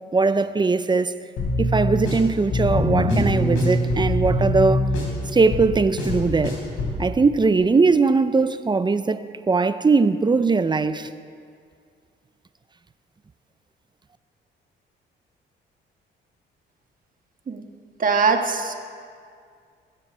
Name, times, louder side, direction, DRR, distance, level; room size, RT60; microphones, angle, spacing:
voice 1, 0.1-1.1 1.6-4.9 5.3-6.6 7.0-11.1, right 4 dB, 20° right, 0.6 m, -20 dB
sound 1, 1.4-7.0, left 1 dB, 90° left, 4.8 m, -23 dB
voice 2, 18.0-18.7, right 4 dB, 45° right, 1.6 m, -21 dB
23.0 x 7.6 x 6.2 m
cardioid pair, 90°, 20 cm